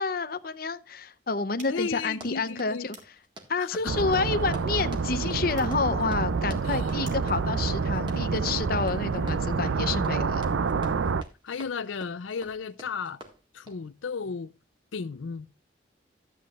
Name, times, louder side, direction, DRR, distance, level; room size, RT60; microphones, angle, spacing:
voice 1, 0.0-3.0 3.5-10.4, left 4 dB, 50° left, 0.7 m, -29 dB
sound 1, 1.5-7.4, right 3 dB, 40° right, 2.7 m, -55 dB
voice 2, 1.7-2.9 3.6-4.0 6.6-6.9 11.4-13.2 13.5-14.5 14.9-15.5, left 5 dB, 85° left, 0.5 m, -34 dB
Run, 2.0-13.9, right 1 dB, 25° right, 1.6 m, -49 dB
sound 2, 3.8-11.2, right 5 dB, 85° right, 0.5 m, -28 dB
13.0 x 8.5 x 2.4 m
head